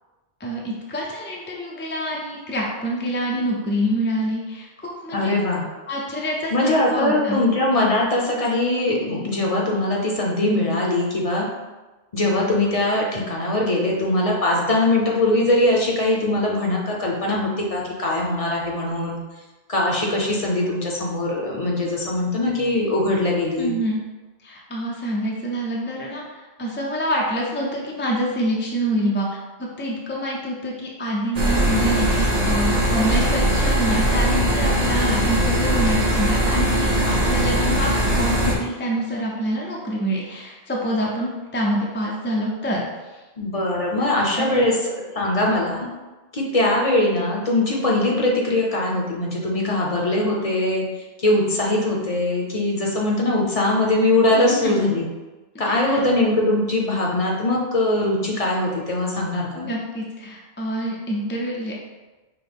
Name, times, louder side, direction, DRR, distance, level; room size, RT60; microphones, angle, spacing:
voice 1, 0.4-5.3 5.9-7.4 23.6-24.0 24.4-29.3 29.6-43.2 44.4-44.7 54.3-54.9 55.5-56.0 59.5-61.7, equal, 15° left, -3 dB, 0.4 m, -26 dB
voice 2, 5.1-5.6 6.5-11.5 12.1-19.2 19.7-23.7 34.8-35.3 43.4-44.7 45.1-45.9 46.3-50.8 51.2-55.1 55.6-59.7, left 1 dB, 40° left, -2 dB, 0.7 m, -21 dB
sound 1, 31.3-38.5, right 1 dB, 45° right, 0.7 m, -20 dB
5.9 x 2.0 x 3.5 m, 1.2 s
omnidirectional pair, 1.0 m